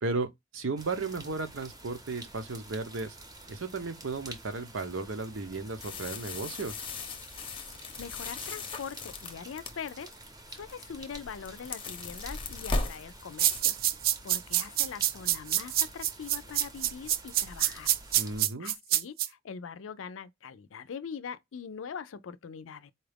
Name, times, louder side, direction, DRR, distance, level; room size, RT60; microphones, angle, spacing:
voice 1, 0.0-3.2 3.5-6.7 18.1-18.7, right 3 dB, 85° right, 0.8 m, -35 dB
sound 1, 0.8-18.4, right 1 dB, 20° right, 0.7 m, -48 dB
sound 2, 5.8-10.1 10.6-10.9 11.2-13.6, left 3 dB, 30° left, 0.7 m, -37 dB
voice 2, 8.0-13.8 14.2-17.9 18.6-22.9, left 6 dB, 90° left, 0.4 m, -42 dB
Shaker Opium Poppy Papaver Seeds - steady shake, 13.4-19.3, right 13 dB, 50° right, 0.3 m, -26 dB
4.3 x 2.4 x 3.3 m
head